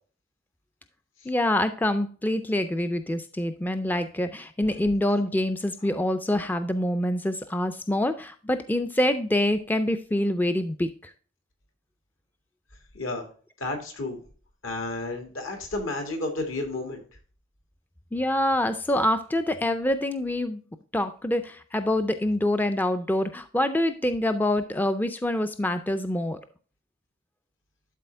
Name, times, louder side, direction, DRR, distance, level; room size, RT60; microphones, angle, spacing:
voice 1, 1.3-11.1 18.1-20.6 20.9-26.4, left 1 dB, 10° left, 9 dB, 0.3 m, -26 dB
voice 2, 12.9-13.3 13.6-14.2 14.6-17.0, left 2 dB, 75° left, 4 dB, 2.0 m, -31 dB
12.0 x 4.1 x 3.3 m, 0.40 s
head